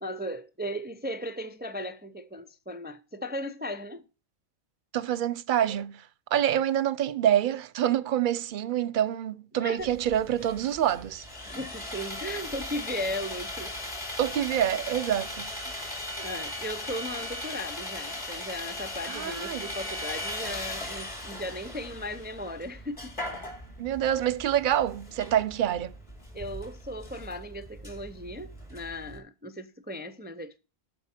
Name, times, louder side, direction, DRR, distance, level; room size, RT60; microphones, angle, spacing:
voice 1, 0.0-4.1 9.6-9.9 11.5-13.7 16.2-23.2 26.3-30.6, equal, 15° right, 0.4 m, -37 dB
voice 2, 4.9-6.0 6.3-11.3 14.2-15.5 19.1-19.7 23.8-25.9, right 10 dB, 60° right, 0.7 m, -26 dB
Sawing, 9.8-29.2, left 1 dB, 30° left, 2.4 m, -38 dB
12.5 x 4.3 x 4.3 m
omnidirectional pair, 1.1 m